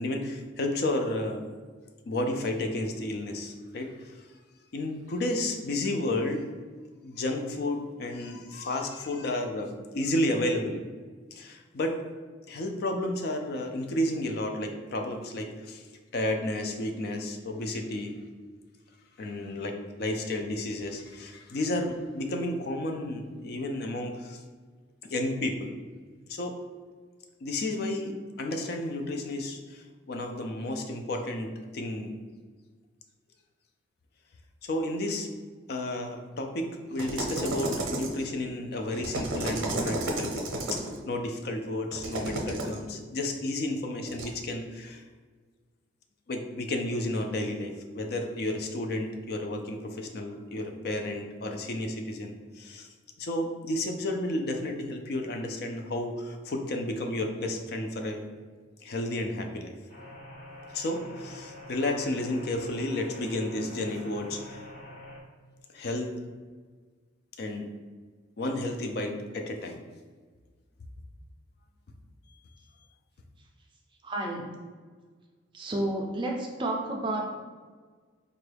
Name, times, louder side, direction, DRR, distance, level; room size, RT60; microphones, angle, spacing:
voice 1, 0.0-1.4 2.1-4.3 4.7-6.4 7.0-10.8 11.3-12.0 12.5-15.9 16.1-18.1 19.2-24.4 25.0-25.7 26.3-26.6 27.4-32.1 34.6-35.3 35.7-45.0 46.3-52.9 53.2-58.3 58.8-59.7 60.7-64.6 65.7-66.2 67.4-67.7 68.4-69.8, left 1 dB, 50° left, 4 dB, 0.4 m, -32 dB
sound 1, 37.0-38.3 38.9-41.0 41.9-42.8 44.1-44.3, right 2 dB, 90° right, 0.6 m, -32 dB
sound 2, 59.9-65.2, left 1 dB, 35° left, 0.8 m, -46 dB
voice 2, 74.0-74.5 75.5-77.4, right 1 dB, 25° right, 0 dB, 0.4 m, -31 dB
3.9 x 2.2 x 3.2 m, 1.5 s
head